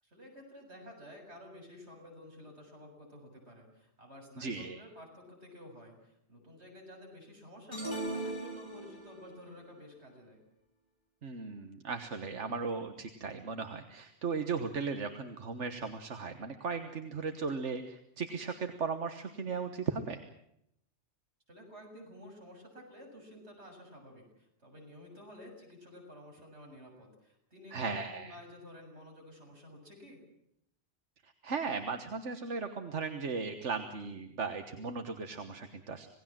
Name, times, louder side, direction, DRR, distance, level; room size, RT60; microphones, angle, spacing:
voice 1, 0.0-10.4 21.5-30.2, left 1 dB, 70° right, 1 dB, 7.6 m, -52 dB
voice 2, 4.4-4.8 11.2-20.2 27.7-28.4 31.2-36.1, right 5 dB, 90° right, 7 dB, 1.7 m, -37 dB
sound 1, 7.7-9.3, right 1 dB, 35° left, 5.1 m, -38 dB
27.5 x 18.5 x 7.6 m, 0.76 s
omnidirectional pair, 1.2 m